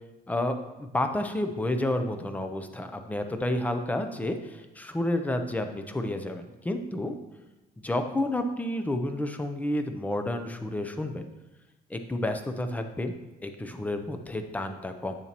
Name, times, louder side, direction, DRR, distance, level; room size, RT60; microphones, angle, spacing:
voice 1, 0.3-7.2 7.8-11.3 11.9-13.1 13.4-15.1, left 1 dB, 10° left, 7 dB, 0.5 m, -30 dB
8.7 x 6.9 x 2.9 m, 1.1 s
cardioid pair, 140°, 19 cm